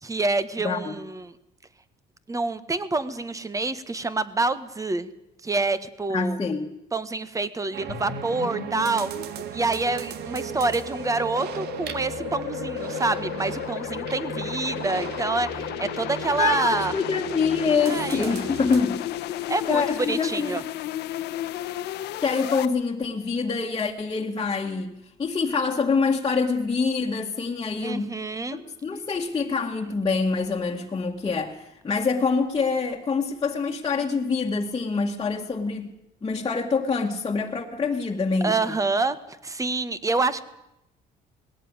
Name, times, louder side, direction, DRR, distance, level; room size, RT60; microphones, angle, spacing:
voice 1, 0.0-1.3 2.3-5.1 5.4-6.4 6.9-9.1 9.5-16.9 17.8-18.3 19.5-20.6 27.8-28.6 38.4-39.2 39.4-40.4, right 3 dB, 20° right, 14 dB, 1.6 m, -27 dB
voice 2, 0.6-1.0 6.1-6.7 16.4-19.1 19.7-20.6 22.2-28.1 28.5-35.9 36.2-38.8, left 4 dB, 25° left, -2 dB, 1.9 m, -26 dB
sound 1, 7.7-18.8, right 8 dB, 70° right, 1.9 m, -36 dB
sound 2, 7.9-22.7, left 13 dB, 80° left, 1.4 m, -34 dB
20.0 x 17.0 x 9.8 m, 0.87 s
cardioid pair, 110°, 17 cm